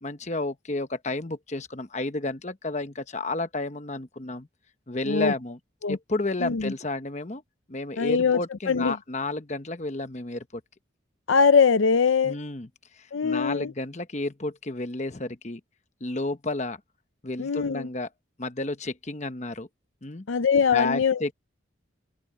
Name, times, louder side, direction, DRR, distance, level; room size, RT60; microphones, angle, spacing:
voice 1, 0.0-4.5 4.9-5.6 5.9-7.4 7.7-10.6 12.2-12.7 12.9-15.6 16.0-16.8 17.2-18.1 18.4-19.7 20.0-20.3 20.7-21.3, left 2 dB, 35° left, 1.0 m, -31 dB
voice 2, 6.4-6.7 8.0-8.4 8.7-9.0 11.3-12.4 13.1-13.7 17.4-17.9 20.3-21.3, left 5 dB, 85° left, 0.6 m, -22 dB
head